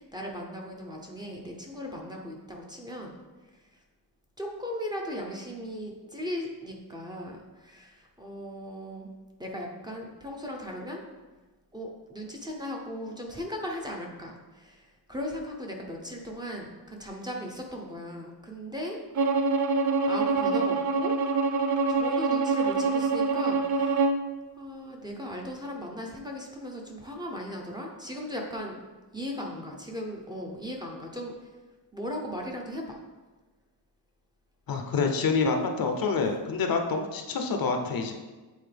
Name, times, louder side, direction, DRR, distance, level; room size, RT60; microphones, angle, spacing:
voice 1, 0.0-3.2 4.4-9.1 9.4-11.0 11.7-19.0 20.0-21.1 21.9-24.1 24.6-28.8 29.1-31.3 31.9-33.0, equal, 10° right, -1 dB, 0.7 m, -37 dB
Bowed string instrument, 19.1-24.2, right 4 dB, 45° right, 0.4 m, -25 dB
voice 2, 34.7-38.1, left 4 dB, 55° left, 4 dB, 0.7 m, -27 dB
8.1 x 4.1 x 3.4 m, 1.3 s
wide cardioid pair, 155°, 42 cm